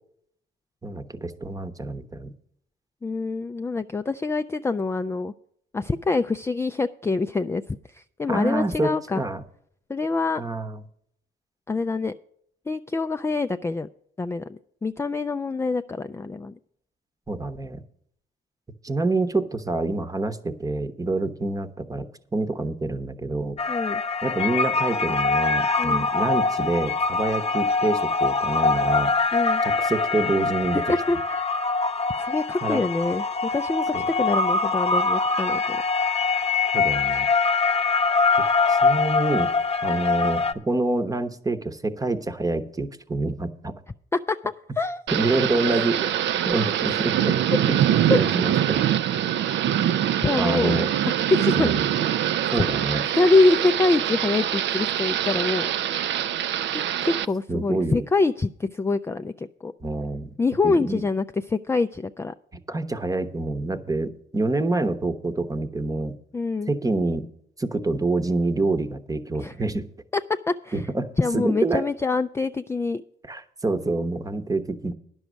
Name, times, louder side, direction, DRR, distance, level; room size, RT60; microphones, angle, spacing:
voice 1, 0.8-2.3 8.3-9.4 10.4-10.8 17.3-17.8 18.8-22.0 22.3-23.6 24.2-29.1 29.6-30.9 32.6-32.8 36.7-37.3 38.7-39.5 39.8-43.7 45.1-46.1 46.5-47.4 47.7-47.8 48.1-48.9 50.3-50.9 51.5-51.9 52.5-53.1 57.5-58.0 59.8-60.3 60.6-61.0 62.7-66.1 66.7-67.2 67.6-69.8 70.7-71.1 71.3-71.9 73.3-74.9, right 2 dB, 15° right, 10 dB, 0.9 m, -27 dB
voice 2, 3.0-5.3 5.7-7.6 7.9-9.2 9.9-10.4 11.7-12.1 12.7-13.9 14.2-16.6 23.7-24.0 25.8-26.1 29.3-29.6 30.7-31.5 32.2-33.2 33.5-35.8 44.3-44.4 44.8-45.0 46.9-47.0 48.1-48.2 50.2-51.7 52.2-52.5 53.2-55.7 56.7-59.7 60.4-62.3 66.3-66.7 69.4-69.5 70.5-70.8 71.2-73.0, left 3 dB, 15° left, 9 dB, 0.3 m, -25 dB
sound 1, 23.6-40.5, left 4 dB, 30° left, 0.8 m, -23 dB
Thunder / Rain, 45.1-57.3, right 10 dB, 65° right, 0.4 m, -24 dB
10.5 x 6.3 x 8.0 m, 0.68 s
cardioid pair, 90°, 20 cm